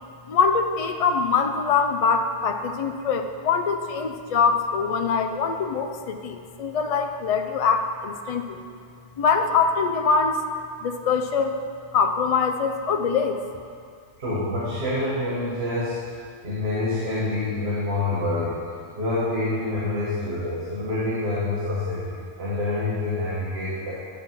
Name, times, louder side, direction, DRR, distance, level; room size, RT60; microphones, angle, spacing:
voice 1, 0.3-8.7 9.2-10.4 10.8-11.6 11.9-13.4, left 5 dB, 65° left, 5 dB, 0.3 m, -23 dB
voice 2, 14.2-16.0 16.4-18.7 19.0-23.9, left 2 dB, 60° right, -8 dB, 1.5 m, -27 dB
10.0 x 3.6 x 5.7 m, 2.3 s
omnidirectional pair, 1.2 m